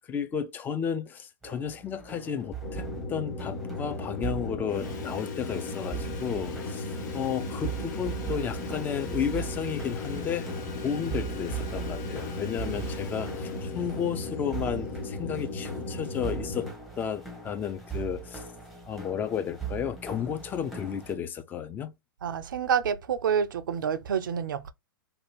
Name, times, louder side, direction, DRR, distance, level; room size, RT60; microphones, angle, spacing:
voice 1, 0.1-6.9 7.1-10.5 10.8-16.7 17.0-18.4 18.9-21.9, left 8 dB, 15° left, 0.3 m, -33 dB
sound 1, 1.4-21.1, right 7 dB, ahead, 0.7 m, -40 dB
sound 2, 2.6-16.7, left 2 dB, 35° left, 1.3 m, -36 dB
Sawing, 4.7-15.7, left 5 dB, 55° left, 0.8 m, -48 dB
voice 2, 22.2-24.7, right 7 dB, 70° right, 0.4 m, -28 dB
2.6 x 2.2 x 3.0 m
figure-of-eight pair, 105°, 11 cm